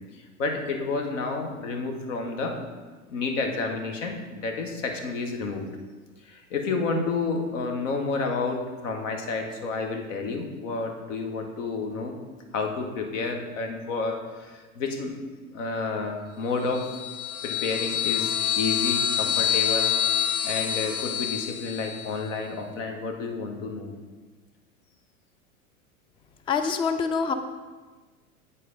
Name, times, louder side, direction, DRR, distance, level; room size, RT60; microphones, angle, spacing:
voice 1, 0.1-2.6 3.1-5.6 6.3-12.1 12.5-15.1 15.5-16.8 17.4-19.9 20.4-23.9, left 4 dB, 60° left, 3 dB, 1.4 m, -30 dB
sound 1, 16.7-22.2, left 9 dB, 90° left, 0.7 m, -27 dB
voice 2, 26.5-27.3, left 5 dB, 15° left, 8 dB, 0.3 m, -25 dB
9.7 x 4.3 x 5.2 m, 1.4 s
figure-of-eight pair, 90°, 42 cm